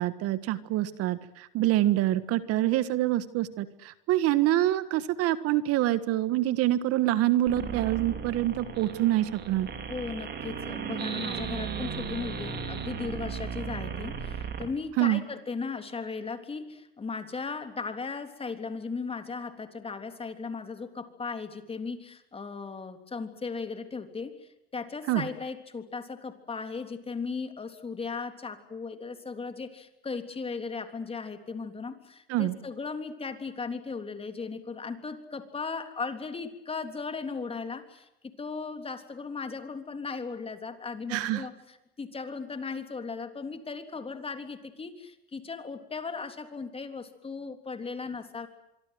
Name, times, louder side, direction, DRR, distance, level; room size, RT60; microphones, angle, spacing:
voice 1, 0.0-9.7 15.0-15.2 25.1-25.3 32.3-32.5 41.1-41.5, right 14 dB, 55° right, 14 dB, 1.6 m, -26 dB
sound 1, 7.5-14.7, right 6 dB, 35° right, 5.1 m, -36 dB
voice 2, 9.9-48.5, left 4 dB, 20° left, 8 dB, 3.4 m, -37 dB
26.0 x 23.5 x 7.9 m, 0.87 s
supercardioid pair, 105°, 29 cm